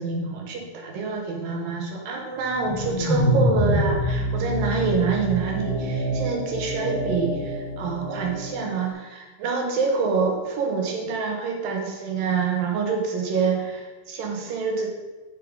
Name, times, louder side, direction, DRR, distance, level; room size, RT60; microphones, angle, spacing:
voice 1, 0.0-14.9, right 5 dB, 75° right, 1 dB, 2.8 m, -26 dB
sound 1, 2.4-8.7, equal, 5° left, 0.7 m, -26 dB
8.7 x 5.6 x 4.8 m, 1.2 s
omnidirectional pair, 4.2 m